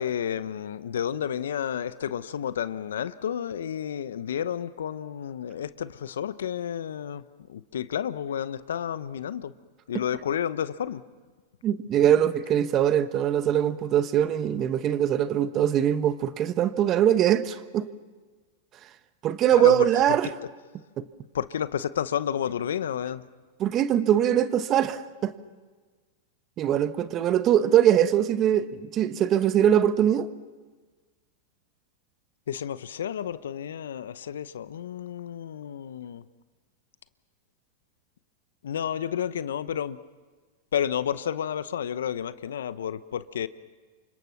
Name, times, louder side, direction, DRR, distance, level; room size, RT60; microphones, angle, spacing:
voice 1, 0.0-7.2 7.5-9.5 9.9-11.0 19.5-19.9 21.3-23.2 32.5-36.2 38.6-40.0 40.7-43.5, left 9 dB, 80° left, 0.8 m, -31 dB
voice 2, 11.6-17.9 19.2-20.3 21.0-21.1 23.6-25.3 26.6-30.3, right 10 dB, 35° right, 1.2 m, -22 dB
29.0 x 25.5 x 5.9 m
hypercardioid pair, 105°, 0 cm